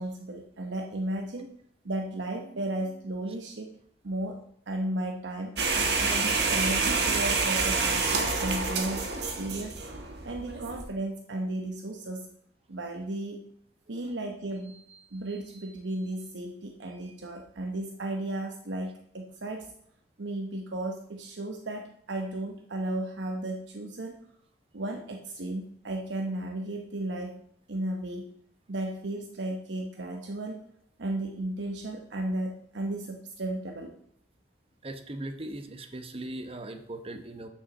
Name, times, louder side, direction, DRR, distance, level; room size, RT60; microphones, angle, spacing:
voice 1, 0.0-1.5 1.8-3.8 4.0-4.4 4.7-5.6 6.0-9.8 10.2-12.3 12.7-13.4 13.9-19.7 20.2-24.2 24.7-27.4 27.7-28.3 28.7-30.6 31.0-33.9, right 1 dB, 90° right, 3 dB, 0.9 m, -34 dB
sound 1, 5.6-10.8, right 4 dB, 65° right, 1.4 m, -27 dB
voice 2, 34.8-37.5, right 1 dB, 35° right, 7 dB, 0.9 m, -39 dB
7.1 x 5.6 x 7.2 m, 0.69 s
head